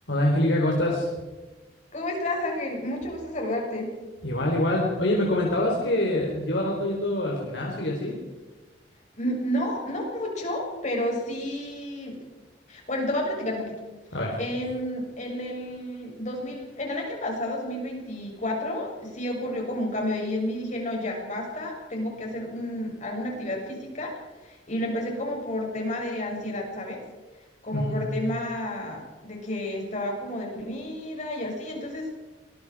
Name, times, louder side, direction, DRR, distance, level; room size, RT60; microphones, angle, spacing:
voice 1, 0.1-1.1 4.2-8.2 14.1-14.4 27.7-28.0, left 1 dB, 85° left, -2 dB, 4.2 m, -25 dB
voice 2, 1.9-3.9 9.2-12.2 12.7-13.8 14.4-24.1 24.4-27.0 27.6-32.1, left 1 dB, 45° left, 0 dB, 7.1 m, -31 dB
25.5 x 20.5 x 5.0 m, 1.2 s
head